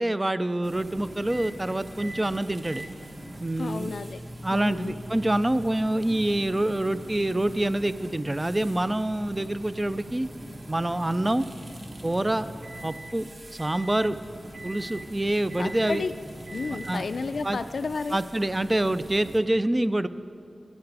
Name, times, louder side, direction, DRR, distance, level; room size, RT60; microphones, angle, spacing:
voice 1, 0.0-2.9 3.4-3.9 4.4-10.3 10.7-11.5 12.0-12.5 12.8-14.2 14.6-16.0 16.9-17.0 17.4-17.6 18.1-20.1, right 1 dB, 20° right, 14 dB, 0.3 m, -26 dB
sound 1, 0.6-19.4, right 1 dB, 40° right, 1.2 m, -44 dB
sound 2, 1.3-1.6 2.0-2.3 2.6-13.2 13.6-14.1 14.5-15.1 15.5-16.1 16.5-17.0, right 1 dB, 75° right, 1.2 m, -45 dB
voice 2, 3.6-4.2 4.5-5.0 15.6-16.1 16.5-18.2, left 4 dB, 70° left, 10 dB, 0.4 m, -32 dB
13.5 x 9.5 x 4.7 m, 2.3 s
wide cardioid pair, 105°, 0 cm